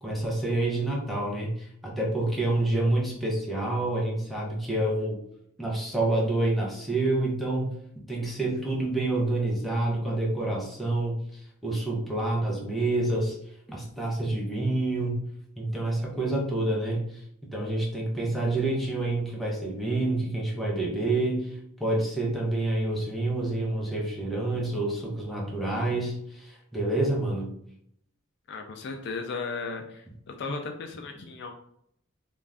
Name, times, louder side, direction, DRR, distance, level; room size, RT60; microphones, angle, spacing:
voice 1, 0.0-5.2 5.6-7.8 8.1-13.4 13.7-15.2 15.6-27.5, right 2 dB, ahead, -3 dB, 0.6 m, -28 dB
voice 2, 28.5-31.5, left 4 dB, 50° left, 4 dB, 0.3 m, -35 dB
2.5 x 2.3 x 3.3 m, 0.69 s
head